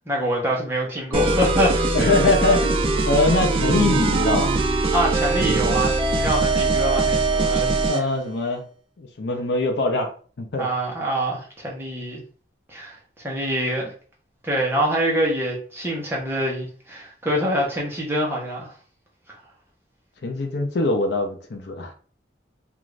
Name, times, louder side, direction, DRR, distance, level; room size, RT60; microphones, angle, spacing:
voice 1, 0.1-2.0 4.9-7.7 10.6-12.2 12.7-13.0 13.2-13.9 14.4-18.7, equal, 15° right, 0.8 m, -25 dB
sound 1, 1.1-8.0, right 3 dB, 30° right, 0.3 m, -21 dB
voice 2, 1.9-4.5 7.9-8.6 9.0-10.1 10.4-10.7 20.2-21.9, left 2 dB, 60° left, 0.5 m, -22 dB
2.5 x 2.4 x 3.1 m
head